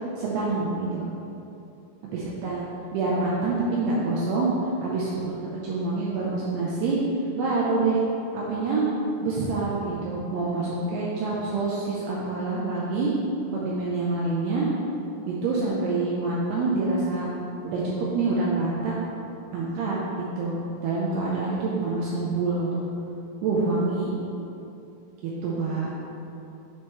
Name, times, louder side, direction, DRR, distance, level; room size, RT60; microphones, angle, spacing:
voice 1, 0.2-1.0 2.0-4.5 4.8-5.3 5.6-7.0 7.4-8.0 8.3-8.8 9.2-13.1 13.5-14.7 15.2-17.3 17.6-18.9 19.5-20.0 20.4-22.9 23.4-24.1 25.2-25.9, right 3 dB, 85° right, -5 dB, 2.3 m, -26 dB
9.3 x 4.6 x 3.1 m, 2.8 s
omnidirectional pair, 5.5 m